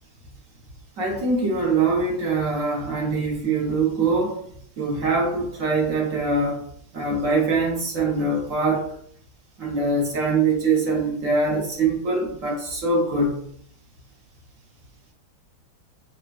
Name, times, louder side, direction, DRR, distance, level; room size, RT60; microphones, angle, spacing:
voice 1, 1.0-4.5 4.8-6.6 6.9-8.9 9.6-13.4, right 3 dB, 55° right, -2 dB, 1.0 m, -23 dB
6.5 x 2.2 x 2.4 m, 0.62 s
omnidirectional pair, 2.4 m